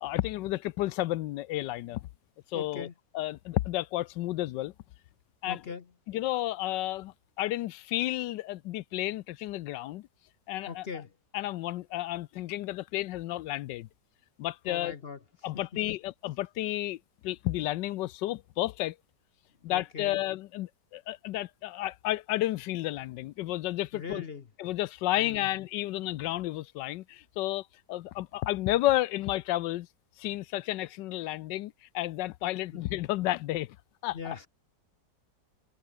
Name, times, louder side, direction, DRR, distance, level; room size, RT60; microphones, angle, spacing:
voice 1, 0.0-2.1 2.5-2.9 3.1-4.7 5.4-5.6 6.1-10.1 10.5-10.9 11.3-13.9 14.4-15.0 15.4-19.0 19.6-24.2 24.6-29.9 30.2-33.8 34.0-34.4, left 16 dB, 80° left, 1.2 m, -32 dB
voice 2, 2.5-2.9 5.5-5.9 10.7-11.1 14.7-15.2 19.7-20.2 23.9-24.4 25.2-25.5 32.7-32.8 34.1-34.5, left 5 dB, 45° left, 0.9 m, -40 dB
omnidirectional pair, 1.9 m